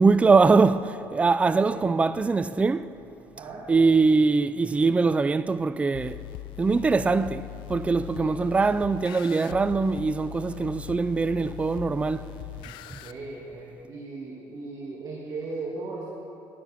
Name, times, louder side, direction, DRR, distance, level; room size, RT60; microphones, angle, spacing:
voice 1, 0.0-2.9 3.7-6.2 6.6-12.2, right 4 dB, 15° right, 0.3 m, -22 dB
voice 2, 3.3-3.7 8.2-8.3 12.8-16.1, right 3 dB, 50° right, 1.8 m, -37 dB
sound 1, 5.9-13.1, left 14 dB, 75° left, 0.4 m, -40 dB
10.5 x 10.0 x 6.2 m
cardioid pair, 105°, 8 cm